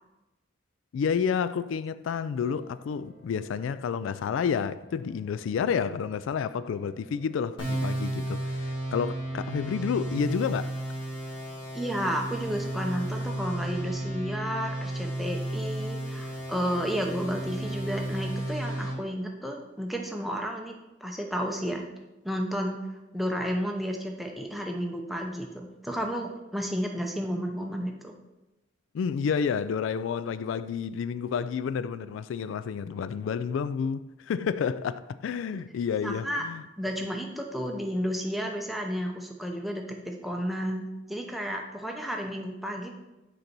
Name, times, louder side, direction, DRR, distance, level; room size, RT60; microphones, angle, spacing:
voice 1, 0.9-10.7 28.9-36.6, left 6 dB, 85° left, 0.3 m, -30 dB
sound 1, 2.4-18.3, left 1 dB, 65° left, 2.0 m, -53 dB
sound 2, 7.6-18.9, right 1 dB, 25° left, 2.4 m, -33 dB
voice 2, 11.7-20.7 21.0-21.9 22.2-22.8 23.1-28.1 36.0-36.4 36.8-42.9, equal, ahead, 0.7 m, -32 dB
6.6 x 4.0 x 5.9 m
head